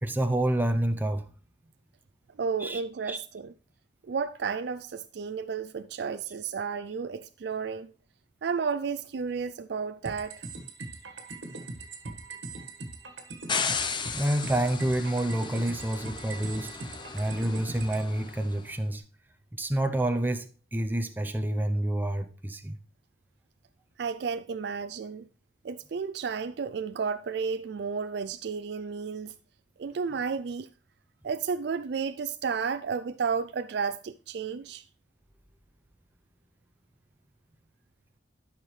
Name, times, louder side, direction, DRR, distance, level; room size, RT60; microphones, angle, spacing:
voice 1, 0.0-1.3 2.6-2.8 3.1-3.2 14.1-19.0 19.5-22.8, right 1 dB, 10° right, 0.6 m, -28 dB
voice 2, 2.4-3.5 4.0-7.9 8.4-10.4 24.0-25.3 25.6-29.3 29.8-30.7 31.2-34.8, right 5 dB, 60° right, 0.4 m, -32 dB
sound 1, 10.0-18.0, right 3 dB, 90° right, 1.6 m, -41 dB
sound 2, 13.5-18.6, left 5 dB, 25° left, 0.7 m, -35 dB
12.5 x 5.7 x 3.2 m
head